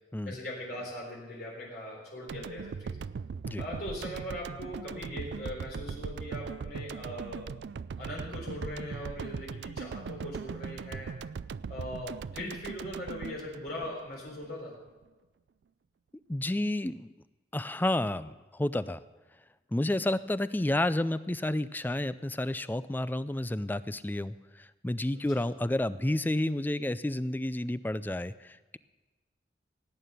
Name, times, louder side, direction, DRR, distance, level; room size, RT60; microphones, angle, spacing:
voice 1, 0.3-3.0 3.6-7.5 8.0-11.1 11.7-14.8 19.8-20.0 25.1-25.6, left 1 dB, 60° left, -3 dB, 3.8 m, -40 dB
sound 1, 2.3-14.5, right 5 dB, 75° right, 0.4 m, -39 dB
voice 2, 16.3-17.1 17.5-19.0 19.7-28.8, left 1 dB, 10° left, 15 dB, 0.3 m, -30 dB
17.5 x 9.4 x 6.7 m, 1.2 s
head